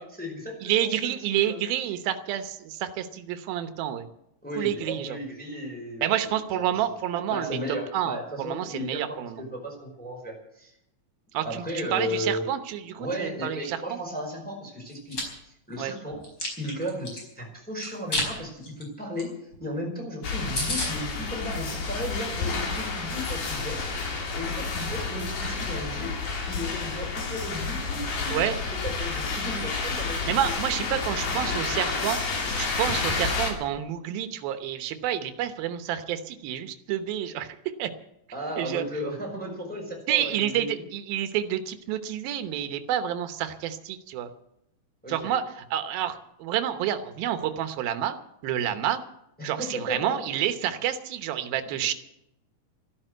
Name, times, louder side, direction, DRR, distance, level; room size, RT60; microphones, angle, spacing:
voice 1, 0.0-1.1 1.4-1.6 4.4-6.3 6.7-6.8 7.3-10.7 11.4-12.5 13.0-16.2 16.6-19.3 19.6-23.9 24.3-26.1 26.5-28.4 28.8-30.2 38.3-40.8 45.0-45.3 49.4-50.2 51.5-51.6, equal, ahead, -1 dB, 4.5 m, -35 dB
voice 2, 0.6-4.0 4.6-5.2 6.0-7.6 7.9-9.4 11.3-14.0 15.8-15.9 28.3-28.6 30.3-32.2 32.6-37.9 38.6-38.8 40.1-44.3 45.1-45.4 45.7-48.2 48.4-49.0 49.4-51.9, right 11 dB, 85° right, 9 dB, 2.9 m, -29 dB
Chewing mastication, 14.9-15.2 15.7-17.2 17.8-18.3 18.6-18.8 19.2-19.3 19.5-19.6 20.0-20.1 20.3-20.4 20.5-20.9, left 1 dB, 30° left, 5.6 m, -30 dB
sound 1, 20.2-33.5, left 4 dB, 90° left, 4.7 m, -30 dB
14.0 x 12.0 x 7.9 m, 0.81 s
omnidirectional pair, 4.1 m